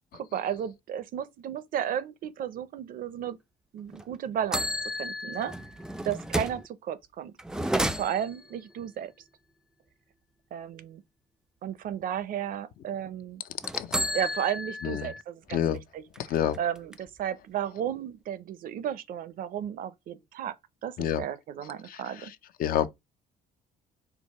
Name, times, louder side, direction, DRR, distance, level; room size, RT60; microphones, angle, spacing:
voice 1, 0.1-3.4 3.7-4.7 5.0-5.5 6.0-7.3 7.7-9.1 10.5-11.0 11.6-13.4 14.1-20.6 20.8-22.3, right 9 dB, 55° right, 0.5 m, -34 dB
sound 1, 3.9-4.0 4.5-6.7 7.4-8.5 13.6-15.2 15.6-15.7 16.1-17.2, equal, 5° right, 0.3 m, -32 dB
voice 2, 16.2-16.6 21.0-21.2 21.9-22.3 22.6-22.9, left 10 dB, 60° left, 0.5 m, -28 dB
4.6 x 2.1 x 4.1 m
cardioid pair, 110°, 17 cm